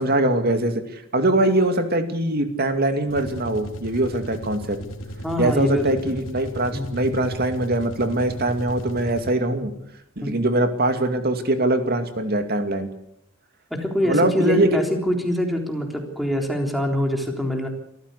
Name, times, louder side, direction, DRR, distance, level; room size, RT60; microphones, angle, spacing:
voice 1, 0.0-4.8 5.4-9.7 10.2-12.9 14.0-14.8, right 1 dB, 50° right, 7 dB, 2.4 m, -22 dB
sound 1, 3.1-9.6, equal, 70° left, 2.9 m, -36 dB
voice 2, 5.2-6.2 6.7-6.9 10.2-10.4 13.7-17.7, left 1 dB, ahead, 2 dB, 3.6 m, -24 dB
25.0 x 14.5 x 8.2 m, 0.75 s
head